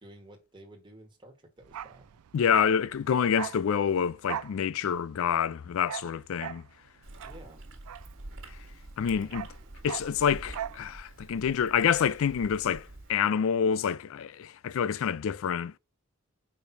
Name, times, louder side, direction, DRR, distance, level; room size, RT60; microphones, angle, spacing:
voice 1, 0.0-2.1 2.3-2.5 7.2-7.6 9.1-9.3, right 1 dB, 20° right, 1.6 m, -52 dB
Bark, 1.6-8.7 8.9-10.9 11.1-11.3, right 10 dB, 80° right, 0.4 m, -40 dB
voice 2, 2.3-6.6 9.0-9.5 9.8-15.8, left 7 dB, 60° left, 0.3 m, -27 dB
Chewing mastication, 7.0-13.2, right 2 dB, 60° right, 1.7 m, -46 dB
5.1 x 4.4 x 5.5 m
head